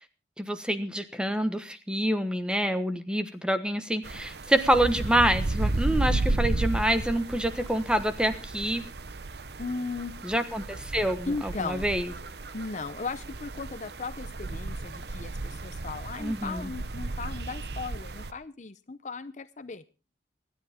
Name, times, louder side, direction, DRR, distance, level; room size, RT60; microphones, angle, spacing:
voice 1, 0.4-8.8 10.2-12.0 16.2-16.7, right 1 dB, 5° right, 9 dB, 1.2 m, -27 dB
sound 1, 4.0-18.3, right 2 dB, 65° right, 0.9 m, -33 dB
voice 2, 9.6-10.1 11.3-11.9 12.5-19.8, left 4 dB, 45° left, 13 dB, 0.7 m, -36 dB
25.5 x 10.0 x 3.6 m, 0.31 s
head